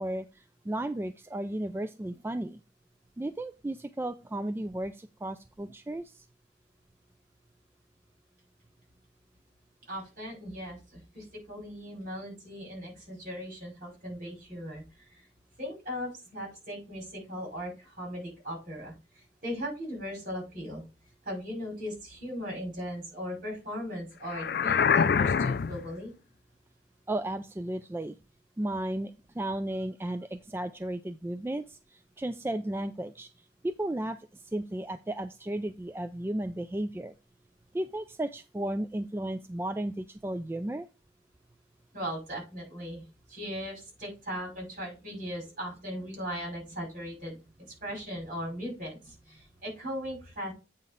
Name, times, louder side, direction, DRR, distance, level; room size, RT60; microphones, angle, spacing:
voice 1, 0.0-2.6 3.2-6.2 27.1-28.1 28.6-33.3 33.6-37.1 37.7-40.9, right 1 dB, 15° right, 9 dB, 0.3 m, -34 dB
voice 2, 9.9-15.2 15.6-20.8 21.3-26.1 41.9-47.4 47.7-50.5, equal, 50° right, 0 dB, 5.5 m, -38 dB
sound 1, 24.3-25.9, left 6 dB, 60° left, 0.4 m, -25 dB
8.5 x 4.0 x 5.2 m, 0.29 s
head